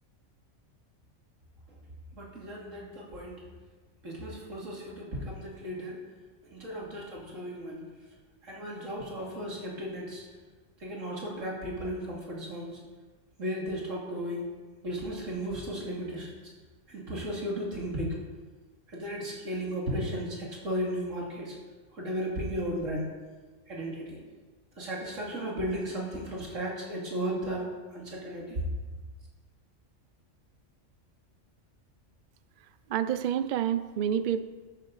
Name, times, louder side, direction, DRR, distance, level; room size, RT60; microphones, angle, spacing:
voice 1, 2.1-3.5 4.0-6.0 6.4-7.8 8.4-10.2 10.8-12.8 13.4-14.5 14.8-16.3 16.9-18.2 18.9-21.6 21.9-23.1 23.7-24.2 24.8-28.6, equal, 80° right, -3 dB, 3.0 m, -35 dB
voice 2, 32.9-34.4, right 9 dB, 60° right, 12 dB, 0.5 m, -28 dB
13.0 x 9.0 x 4.0 m, 1.3 s
omnidirectional pair, 1.3 m